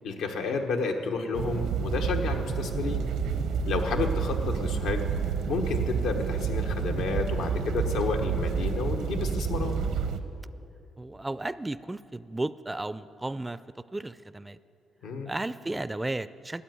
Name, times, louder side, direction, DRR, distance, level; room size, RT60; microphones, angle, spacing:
voice 1, 0.0-3.1 3.7-5.1 5.5-9.8 15.0-15.3, left 4 dB, 90° left, 3 dB, 1.2 m, -31 dB
sound 1, 1.3-10.2, right 6 dB, 80° right, 0.8 m, -29 dB
voice 2, 11.0-13.6 13.9-14.6 15.3-16.6, right 2 dB, 15° right, 16 dB, 0.3 m, -34 dB
13.0 x 8.5 x 9.4 m, 2.7 s
cardioid pair, 90°, 0 cm